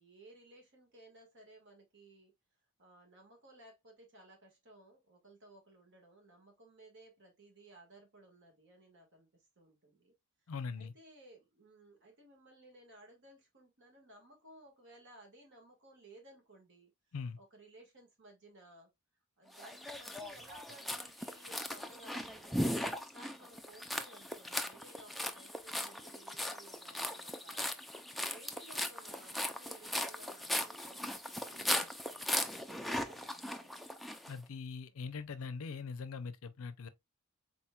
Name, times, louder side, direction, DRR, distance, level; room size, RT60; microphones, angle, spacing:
voice 1, 0.0-2.3 2.8-10.1 10.8-16.9 17.4-18.9 19.4-27.7 28.3-33.7, right 1 dB, 55° right, 1.7 m, -58 dB
voice 2, 10.5-10.9 17.1-17.4 34.3-36.9, left 5 dB, 65° left, 0.5 m, -41 dB
sound 1, 19.6-34.3, left 1 dB, ahead, 0.3 m, -38 dB
4.3 x 4.0 x 2.3 m
head